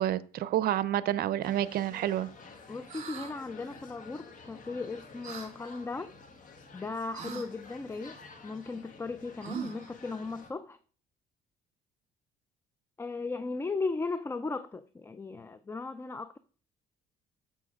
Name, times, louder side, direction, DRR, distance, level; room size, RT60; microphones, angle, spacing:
voice 1, 0.0-2.3, right 12 dB, 65° right, 0.6 m, -29 dB
sound 1, 1.4-10.5, left 4 dB, 50° left, 1.7 m, -51 dB
voice 2, 2.7-6.1 6.7-10.8 13.0-16.4, left 3 dB, 15° left, 0.4 m, -37 dB
sound 2, 2.9-3.3 5.2-5.5 7.1-7.5 9.4-9.9, right 7 dB, 45° right, 1.9 m, -40 dB
7.3 x 6.8 x 4.9 m
cardioid pair, 110°, 17 cm